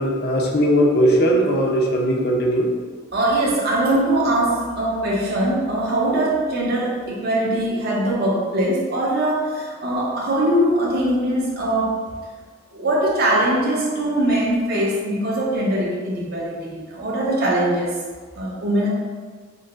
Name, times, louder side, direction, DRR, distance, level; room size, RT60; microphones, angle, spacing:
voice 1, 0.0-2.7, equal, 50° left, 0 dB, 0.6 m, -19 dB
voice 2, 3.1-11.9 12.7-17.9 18.4-18.9, right 1 dB, 50° right, -4 dB, 0.9 m, -21 dB
6.2 x 2.1 x 2.5 m, 1.5 s
head